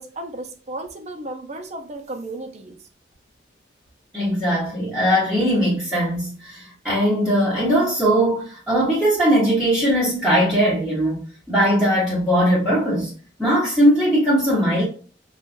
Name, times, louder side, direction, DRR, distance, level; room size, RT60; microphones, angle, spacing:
voice 1, 0.0-2.8, right 2 dB, 40° right, 0.6 m, -34 dB
voice 2, 4.1-11.2 11.5-13.1 13.4-14.8, equal, ahead, 1.1 m, -19 dB
5.4 x 2.4 x 2.5 m
head